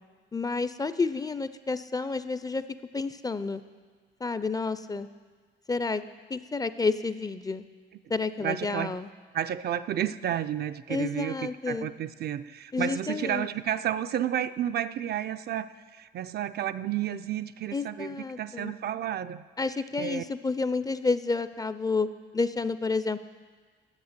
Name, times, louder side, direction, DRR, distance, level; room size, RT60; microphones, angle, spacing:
voice 1, 0.3-2.6 2.9-3.6 4.2-5.1 5.7-6.0 6.3-7.6 8.1-9.1 10.9-11.9 12.7-13.5 17.7-18.7 19.6-22.1 22.3-23.2, left 4 dB, 20° left, 13 dB, 0.4 m, -30 dB
voice 2, 8.4-9.0 9.3-19.5 20.0-20.2, right 10 dB, 55° right, 12 dB, 0.4 m, -31 dB
9.6 x 7.4 x 6.7 m, 1.5 s
cardioid pair, 90°, 20 cm